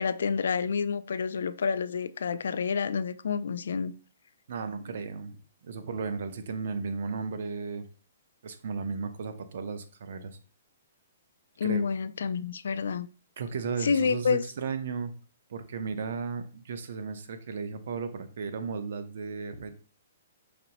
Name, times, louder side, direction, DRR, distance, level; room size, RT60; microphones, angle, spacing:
voice 1, 0.0-3.9 11.6-13.1 13.8-14.4, left 6 dB, 75° left, 0.3 m, -28 dB
voice 2, 4.5-7.8 8.4-10.4 11.6-11.8 13.4-15.1 15.5-19.7, right 5 dB, 55° right, 0.6 m, -35 dB
5.0 x 2.9 x 2.9 m
hypercardioid pair, 170°, 0 cm